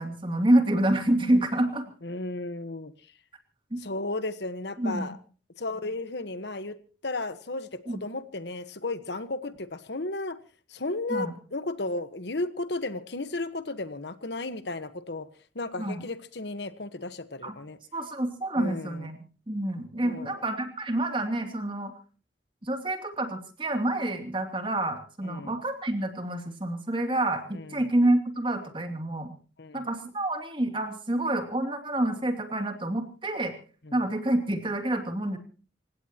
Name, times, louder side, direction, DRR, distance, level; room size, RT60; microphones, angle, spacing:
voice 1, 0.0-1.8 3.7-3.8 4.8-5.1 7.9-8.0 11.1-11.3 15.8-16.0 17.4-17.5 17.9-19.2 19.5-21.9 22.6-29.3 29.7-33.5 33.9-35.4, right 1 dB, 25° right, 6 dB, 2.7 m, -27 dB
voice 2, 2.0-2.9 3.8-5.2 5.6-6.8 7.0-10.4 10.7-15.3 15.5-17.8 18.6-19.1 20.0-20.4 25.2-25.6 27.5-27.9 29.6-29.9 33.8-34.0, left 2 dB, 65° left, 12 dB, 1.3 m, -34 dB
27.5 x 16.5 x 2.9 m, 0.40 s
head